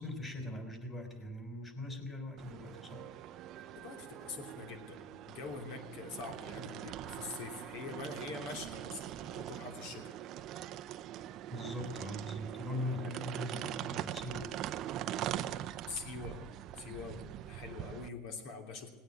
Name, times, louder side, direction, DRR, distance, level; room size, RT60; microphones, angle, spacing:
voice 1, 0.0-3.4 11.5-14.5, left 1 dB, 15° left, 5 dB, 3.7 m, -41 dB
sound 1, 2.4-18.1, right 12 dB, 45° right, 0.7 m, -42 dB
voice 2, 3.5-10.1 15.9-18.9, left 4 dB, 65° left, 4 dB, 3.0 m, -45 dB
18.5 x 9.3 x 8.2 m, 1.2 s
supercardioid pair, 130°, 0 cm